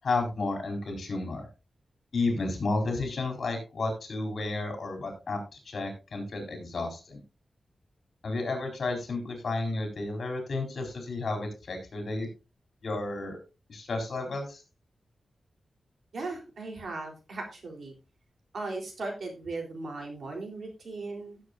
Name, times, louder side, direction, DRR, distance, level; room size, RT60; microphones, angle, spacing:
voice 1, 0.0-1.5 2.1-7.2 8.2-12.3 12.8-13.4 13.7-14.6, left 3 dB, 60° left, 3 dB, 4.2 m, -32 dB
voice 2, 16.1-18.0 18.5-21.4, right 3 dB, 70° right, 2 dB, 3.7 m, -37 dB
16.0 x 7.6 x 2.6 m, 0.28 s
wide cardioid pair, 135°, 0 cm